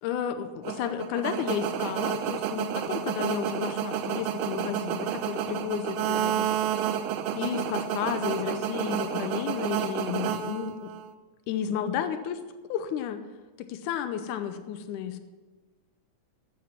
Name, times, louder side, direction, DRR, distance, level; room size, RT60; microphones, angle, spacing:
voice 1, 0.0-6.5 7.4-10.9 11.5-12.4 12.7-13.2 13.7-15.2, left 9 dB, 90° left, 10 dB, 2.3 m, -32 dB
sound 1, 0.6-11.1, right 10 dB, 90° right, 2.3 m, -30 dB
15.0 x 8.5 x 5.9 m, 1.3 s
omnidirectional pair, 3.5 m